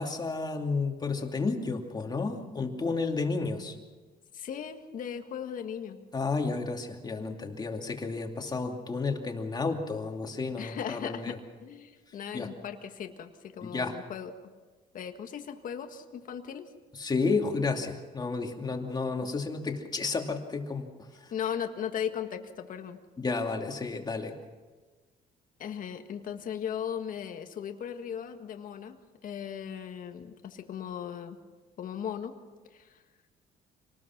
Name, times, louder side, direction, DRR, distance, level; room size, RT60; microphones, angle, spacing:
voice 1, 0.0-3.8 6.1-11.4 12.3-12.5 13.6-14.0 16.9-21.3 23.2-24.3, left 4 dB, 25° left, 3 dB, 2.6 m, -32 dB
voice 2, 4.3-6.0 10.6-14.3 14.9-16.6 21.3-23.0 25.6-29.0 29.2-31.4 31.8-32.4 32.7-33.0, left 8 dB, 55° left, 6 dB, 1.7 m, -37 dB
26.0 x 19.5 x 6.0 m, 1.3 s
cardioid pair, 110°, 17 cm